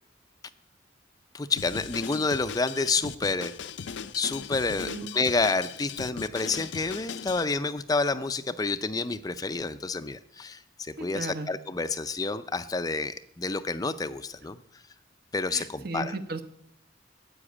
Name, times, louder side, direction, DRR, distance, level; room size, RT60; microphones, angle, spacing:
voice 1, 1.3-3.5 4.1-14.6 15.3-16.2, left 3 dB, 20° left, 12 dB, 0.4 m, -29 dB
Drum kit, 1.6-7.4, left 6 dB, 75° left, 0.6 m, -39 dB
voice 2, 4.8-5.1 11.0-11.5 15.5-16.4, right 2 dB, 55° right, 10 dB, 1.1 m, -35 dB
10.0 x 8.0 x 9.7 m, 0.75 s
head